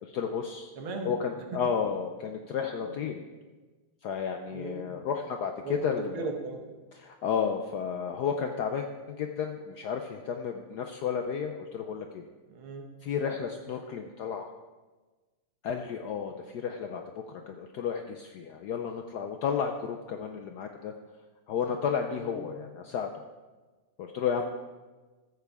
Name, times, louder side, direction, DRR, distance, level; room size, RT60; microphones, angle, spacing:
voice 1, 0.0-0.7 1.0-3.2 4.0-6.3 7.0-12.2 13.0-14.5 15.6-20.9 21.5-23.1 24.0-24.4, left 7 dB, 70° left, 4 dB, 0.9 m, -32 dB
voice 2, 0.8-1.1 2.8-3.0 4.5-5.0 5.6-6.7 12.5-12.9 22.2-22.6, right 4 dB, 90° right, 3 dB, 2.0 m, -38 dB
13.5 x 8.1 x 3.4 m, 1.3 s
omnidirectional pair, 2.3 m